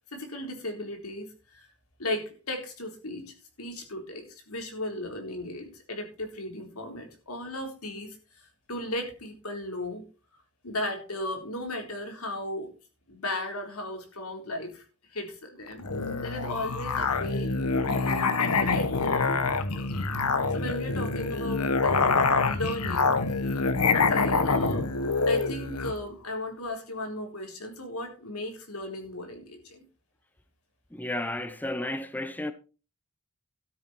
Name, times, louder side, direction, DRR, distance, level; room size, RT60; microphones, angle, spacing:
voice 1, 0.1-1.7 2.0-10.0 10.6-12.7 13.1-14.8 15.1-15.9 16.2-17.6 17.8-19.9 20.5-23.2 23.9-24.9 25.3-29.8, left 1 dB, 70° left, 4.0 m, -36 dB
Musical instrument, 15.8-26.0, left 4 dB, 85° left, 1.4 m, -26 dB
voice 2, 30.9-32.5, left 1 dB, 10° left, 0.7 m, -32 dB
13.0 x 9.1 x 4.3 m
head